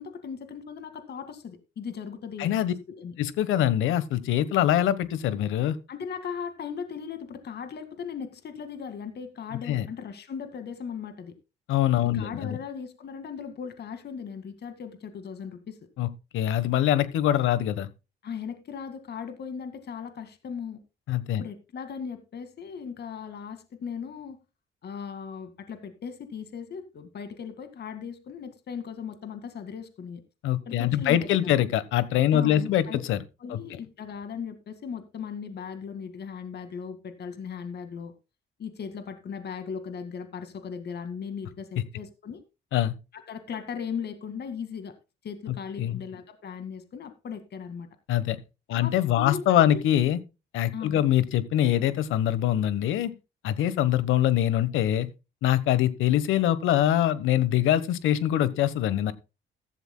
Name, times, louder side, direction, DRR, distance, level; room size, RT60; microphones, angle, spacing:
voice 1, 0.0-2.5 2.9-3.1 5.9-11.3 12.1-15.8 18.2-20.8 21.4-24.4 24.8-30.2 30.7-31.6 32.3-33.0 33.4-38.1 38.6-42.4 43.1-44.9 45.2-47.9 48.7-49.8 50.7-51.0, left 6 dB, 55° left, 2.0 m, -38 dB
voice 2, 2.4-2.7 3.2-5.8 9.7-9.9 11.7-12.6 16.0-16.1 16.3-17.9 21.1-21.4 30.4-33.2 33.5-33.6 42.7-42.9 45.8-46.0 48.1-48.4 48.7-50.2 50.5-53.1 53.4-55.1 55.4-59.1, left 11 dB, 90° left, 1.2 m, -24 dB
15.0 x 12.5 x 2.2 m
cardioid pair, 90°, 20 cm